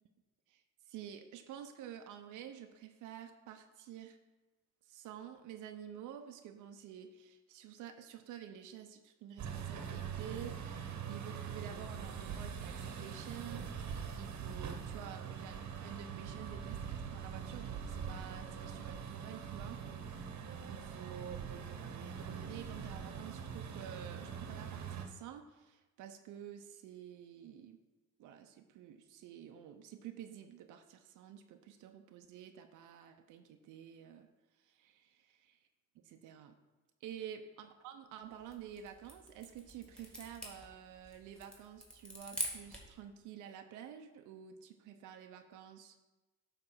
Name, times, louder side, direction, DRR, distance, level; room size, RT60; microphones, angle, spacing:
voice 1, 0.5-4.2 4.9-19.8 20.1-27.8 28.2-34.3 34.6-35.6 35.9-36.6 37.0-46.0, right 9 dB, 90° right, 6 dB, 0.6 m, -50 dB
sound 1, 9.4-25.1, right 7 dB, 65° right, 0.9 m, -43 dB
sound 2, 38.3-43.0, equal, 5° left, 1.8 m, -45 dB
8.8 x 3.3 x 6.1 m, 1.1 s
cardioid pair, 90°, 30 cm